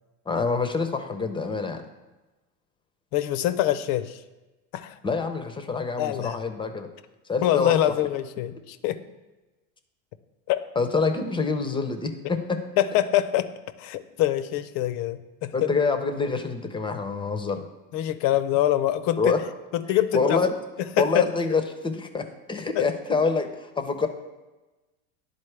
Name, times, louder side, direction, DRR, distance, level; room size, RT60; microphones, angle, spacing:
voice 1, 0.3-1.8 5.0-6.9 7.3-7.8 10.8-12.6 15.5-17.6 19.2-19.4 19.9-20.5 21.0-24.1, left 4 dB, 10° left, 8 dB, 0.6 m, -26 dB
voice 2, 3.1-4.2 4.7-5.0 6.0-6.4 7.4-9.0 10.5-10.6 12.8-13.5 13.8-15.7 17.9-19.3 19.7-20.5 20.8-21.3 22.7-22.9, left 13 dB, 55° left, 13 dB, 0.6 m, -25 dB
11.0 x 4.1 x 3.3 m, 1.1 s
supercardioid pair, 100°, 42 cm